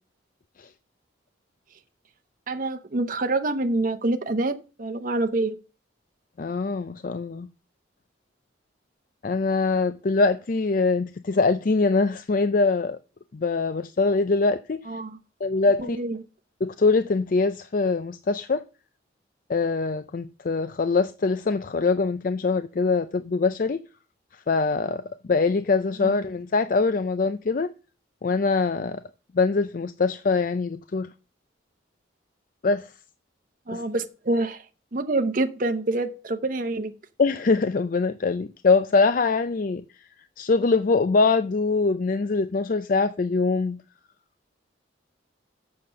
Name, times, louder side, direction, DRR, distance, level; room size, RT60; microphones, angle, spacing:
voice 1, 2.5-5.6 14.9-15.2 15.8-16.2 26.0-26.1 33.7-34.6 34.9-36.9, right 2 dB, 45° right, 0.7 m, -26 dB
voice 2, 6.4-7.5 9.2-13.0 13.3-14.8 15.4-16.0 16.6-18.6 19.5-23.8 24.5-27.7 28.2-29.0 29.3-31.1 32.6-32.9 33.7-33.8 37.2-39.8 40.4-43.8, left 4 dB, 45° left, 0.4 m, -23 dB
7.5 x 6.6 x 6.8 m
head